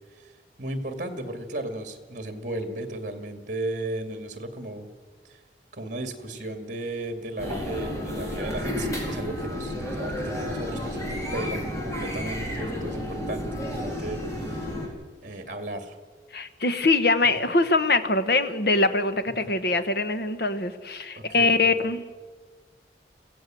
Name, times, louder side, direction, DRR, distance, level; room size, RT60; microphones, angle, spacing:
voice 1, 0.6-4.9 5.3-5.4 5.7-13.4 13.8-14.9 15.2-16.0 17.2-17.4 19.4-19.5 21.2-21.9, right 1 dB, 45° right, 7 dB, 2.2 m, -35 dB
sound 1, 7.4-14.9, left 1 dB, 15° left, 4.4 m, -31 dB
voice 2, 16.3-22.0, left 3 dB, 60° left, 10 dB, 1.3 m, -23 dB
25.5 x 16.0 x 7.7 m, 1.4 s
head